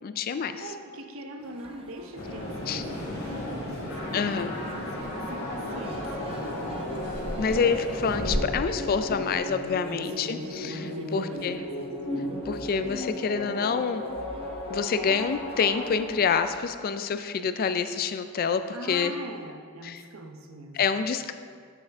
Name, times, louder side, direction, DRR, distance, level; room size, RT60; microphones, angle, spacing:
voice 1, 0.0-0.6 2.7-2.8 4.1-4.5 7.4-11.6 12.5-14.0 14.7-19.1 19.8-20.0 20.7-21.3, left 6 dB, 45° left, 10 dB, 0.3 m, -27 dB
voice 2, 0.6-6.9 9.8-11.9 18.7-20.8, right 1 dB, 70° right, 5 dB, 0.8 m, -43 dB
sound 1, 1.4-16.6, right 2 dB, 25° right, 0.7 m, -48 dB
sound 2, 2.1-8.3, left 1 dB, 85° left, 2.4 m, -35 dB
sound 3, 3.9-16.4, left 1 dB, 65° left, 2.2 m, -36 dB
12.0 x 5.7 x 3.5 m, 2.1 s
head